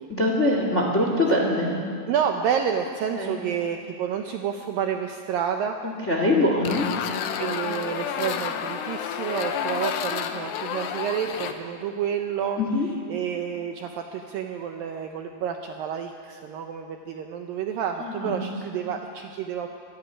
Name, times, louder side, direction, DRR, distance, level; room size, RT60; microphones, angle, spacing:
voice 1, 0.1-1.8 3.1-3.4 5.8-6.9 12.6-12.9 18.0-18.8, left 1 dB, 30° left, 1 dB, 1.4 m, -24 dB
voice 2, 2.1-5.8 7.4-12.6 13.1-19.7, right 8 dB, 75° right, 4 dB, 2.1 m, -29 dB
sound 1, 6.6-11.5, left 8 dB, 75° left, 3.1 m, -30 dB
25.5 x 11.0 x 10.0 m, 2.2 s
omnidirectional pair, 5.0 m